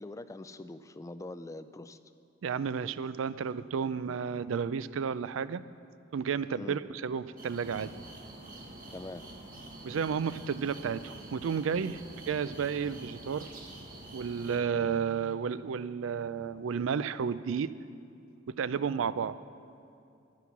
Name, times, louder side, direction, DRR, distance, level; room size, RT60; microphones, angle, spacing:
voice 1, 0.0-2.0 6.6-6.8 8.9-9.3 11.8-12.0, left 2 dB, 15° left, 11 dB, 0.4 m, -43 dB
voice 2, 2.4-5.6 6.1-7.9 9.8-12.0 12.3-13.5 14.1-17.7 18.5-19.3, right 6 dB, 85° right, 16 dB, 0.4 m, -32 dB
sound 1, 7.4-14.6, right 2 dB, 45° right, 1.5 m, -47 dB
10.5 x 9.8 x 7.2 m, 2.6 s
head